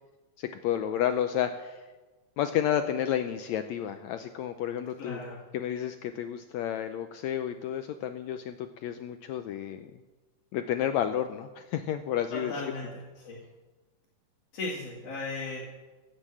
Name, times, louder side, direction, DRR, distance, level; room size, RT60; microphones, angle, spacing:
voice 1, 0.4-1.8 2.4-5.2 5.5-9.9 10.5-12.6, left 10 dB, 85° left, 8 dB, 1.6 m, -31 dB
voice 2, 5.0-5.4 12.3-13.4 14.5-15.7, left 3 dB, 50° left, -5 dB, 3.3 m, -36 dB
16.0 x 7.6 x 7.6 m, 1.2 s
omnidirectional pair, 3.8 m